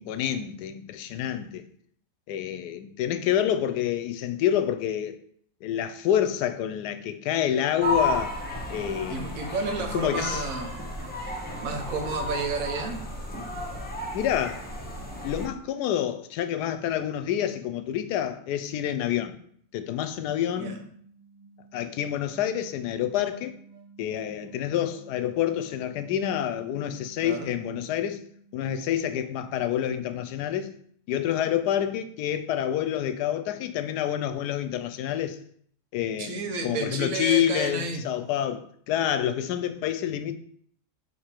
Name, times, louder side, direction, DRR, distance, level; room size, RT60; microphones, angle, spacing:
voice 1, 0.0-1.6 2.3-5.2 5.6-8.4 8.7-9.5 9.9-10.4 14.1-14.7 15.2-19.4 19.7-20.8 21.7-23.5 24.0-28.2 28.5-30.7 31.1-35.4 35.9-40.3, left 10 dB, 85° left, 1.1 m, -28 dB
sound 1, 7.8-15.5, left 1 dB, 10° left, 0.7 m, -33 dB
voice 2, 9.1-10.7 11.2-13.0 20.6-20.7 27.2-27.5 36.2-38.1, right 3 dB, 65° right, 1.3 m, -31 dB
sound 2, 19.5-29.6, right 5 dB, 35° right, 0.6 m, -53 dB
6.7 x 3.5 x 4.4 m
omnidirectional pair, 1.7 m